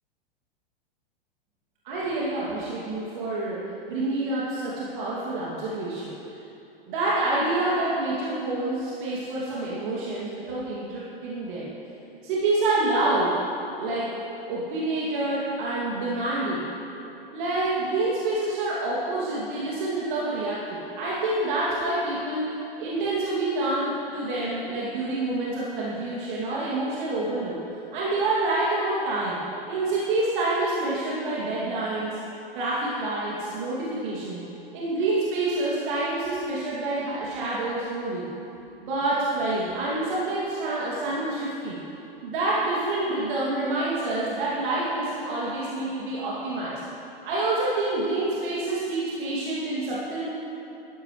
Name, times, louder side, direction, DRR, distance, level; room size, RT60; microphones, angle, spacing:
voice 1, 1.8-6.2 6.8-11.7 12.2-13.4 13.8-16.7 17.3-22.5 22.8-27.6 27.9-29.4 29.7-32.2 32.5-34.4 34.7-38.3 38.8-41.8 42.2-46.8 47.2-50.2, right 2 dB, 55° right, -7 dB, 2.6 m, -27 dB
16.0 x 13.0 x 3.2 m, 2.8 s
figure-of-eight pair, 100°, 29 cm